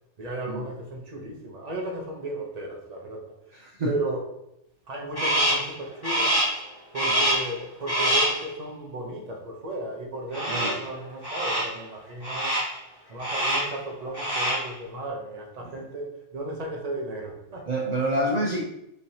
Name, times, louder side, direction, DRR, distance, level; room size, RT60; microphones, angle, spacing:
voice 1, 0.2-3.2 3.5-4.3 4.9-6.4 6.9-12.6 13.1-17.7, right 1 dB, 35° right, 0 dB, 0.8 m, -34 dB
voice 2, 3.6-3.9 7.1-7.2 10.5-10.7 15.6-15.8 17.7-18.6, right 1 dB, 70° right, 0 dB, 0.4 m, -27 dB
Crow, 5.2-5.7 6.0-6.6 6.9-7.5 7.9-8.4 10.3-10.9 11.2-11.8 12.2-12.8 13.2-13.8 14.1-14.7, right 1 dB, 20° left, 1.3 m, -25 dB
5.0 x 3.3 x 2.8 m, 0.81 s
omnidirectional pair, 1.4 m